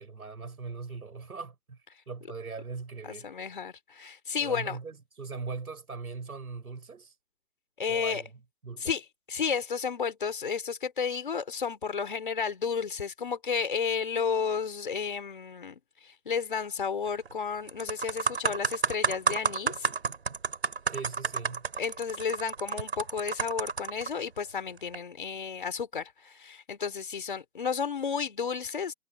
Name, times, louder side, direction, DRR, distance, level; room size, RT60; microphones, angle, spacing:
voice 1, 0.0-1.8 2.1-3.3 4.4-7.1 7.9-8.3 8.6-8.9 20.9-21.7, right 4 dB, 65° right, 7.3 m, -40 dB
voice 2, 3.0-4.8 7.8-8.2 8.8-9.0 9.3-19.9 21.8-28.9, left 6 dB, 30° left, 4.3 m, -32 dB
sound 1, 17.1-17.3 17.7-24.1 24.8-25.0, right 5 dB, 40° right, 4.3 m, -30 dB
hypercardioid pair, 180°, 47 cm